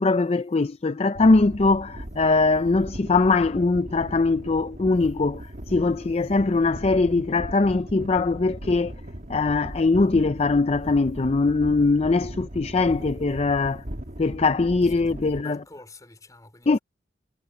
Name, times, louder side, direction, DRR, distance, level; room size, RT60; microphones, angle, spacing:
voice 1, 0.0-5.4 5.7-8.9 9.3-13.8 14.2-15.6 16.7-16.8, left 3 dB, 35° left, 0.5 m, -21 dB
sound 1, 1.1-15.4, right 1 dB, 45° right, 2.1 m, -38 dB
voice 2, 14.8-16.8, left 2 dB, 20° left, 4.7 m, -48 dB
head